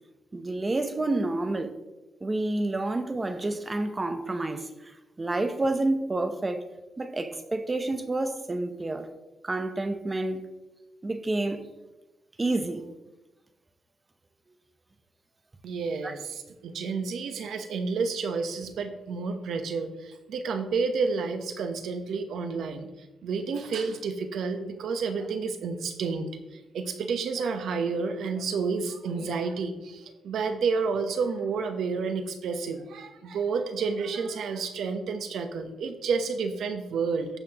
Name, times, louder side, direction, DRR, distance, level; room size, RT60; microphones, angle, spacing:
voice 1, 0.3-1.7 2.2-6.7 7.0-9.1 9.4-10.4 11.0-11.7 12.4-12.8 16.0-16.2, right 2 dB, 25° right, 0.8 m, -29 dB
voice 2, 15.6-22.9 23.2-37.3, right 5 dB, 75° right, 0.9 m, -30 dB
15.0 x 5.8 x 3.0 m
cardioid pair, 100°, 0 cm